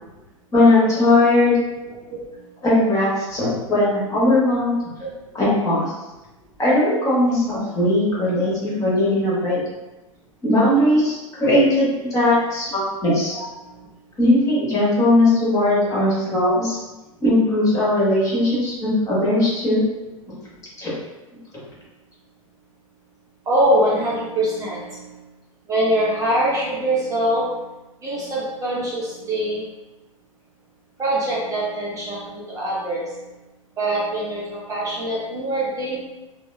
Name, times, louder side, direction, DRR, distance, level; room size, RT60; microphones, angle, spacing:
voice 1, 0.5-1.6 2.6-4.8 5.3-5.8 6.6-9.6 10.4-13.3 14.2-16.8 17.2-19.8 20.8-20.9, left 1 dB, 20° left, -7 dB, 1.4 m, -18 dB
voice 2, 1.8-2.4 5.0-5.1 13.3-13.8 20.4-20.5 23.5-25.2 25.7-27.7 28.0-29.7 31.0-33.3 33.8-36.0, right 1 dB, 20° right, -6 dB, 0.8 m, -24 dB
3.2 x 2.8 x 2.2 m, 1.1 s
figure-of-eight pair, 95°, 18 cm